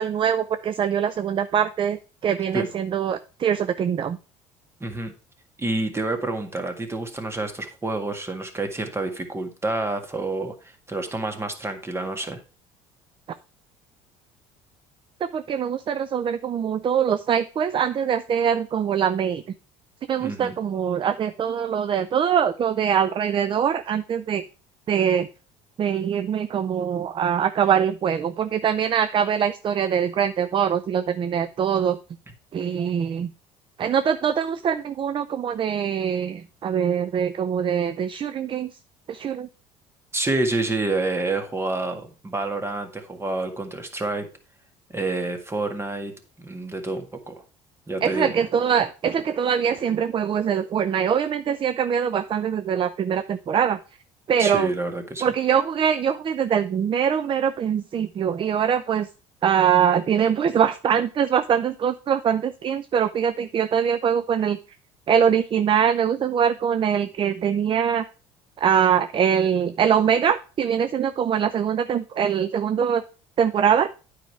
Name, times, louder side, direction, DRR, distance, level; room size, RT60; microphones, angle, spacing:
voice 1, 0.0-2.0 2.2-4.2 15.3-19.4 20.1-24.4 24.9-25.3 25.8-32.0 32.5-33.3 33.8-38.7 39.1-39.5 48.0-53.8 54.3-54.7 55.2-59.1 59.4-64.6 65.1-68.1 68.6-73.0 73.4-73.9, right 8 dB, 35° right, 12 dB, 0.5 m, -23 dB
voice 2, 4.8-5.1 5.6-12.4 20.2-20.5 40.1-44.3 44.9-47.3 47.9-48.4 54.4-55.2, right 2 dB, 20° right, 6 dB, 1.8 m, -28 dB
9.1 x 5.0 x 4.5 m, 0.34 s
supercardioid pair, 80°, 14 cm